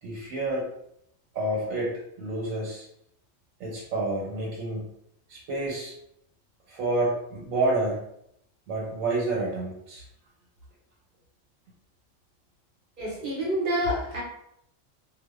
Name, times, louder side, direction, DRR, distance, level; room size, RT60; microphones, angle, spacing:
voice 1, 0.0-0.7 1.3-2.9 3.6-4.9 5.3-5.9 6.7-8.0 8.7-10.0, right 2 dB, 80° right, -5 dB, 1.1 m, -29 dB
voice 2, 13.0-14.2, equal, 50° right, -4 dB, 0.7 m, -28 dB
2.5 x 2.1 x 2.3 m, 0.74 s
omnidirectional pair, 1.4 m